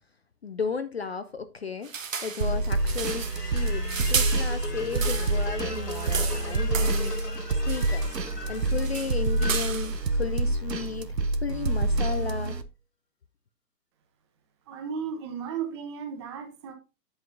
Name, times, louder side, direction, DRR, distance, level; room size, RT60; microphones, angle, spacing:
voice 1, 0.4-1.9 2.2-7.2 7.7-8.2 8.5-11.1 11.4-12.6, left 5 dB, 45° left, 0.5 m, -34 dB
sound 1, 1.8-5.5 5.8-7.3 7.7-8.3 8.5-10.1, right 6 dB, 55° right, 1.2 m, -34 dB
sound 2, 2.4-12.6, right 2 dB, 90° right, 0.8 m, -27 dB
sound 3, 2.6-10.7, left 2 dB, 80° left, 2.2 m, -40 dB
voice 2, 14.7-16.7, right 7 dB, 15° right, 0.9 m, -35 dB
7.9 x 7.4 x 2.6 m
figure-of-eight pair, 130°, 48 cm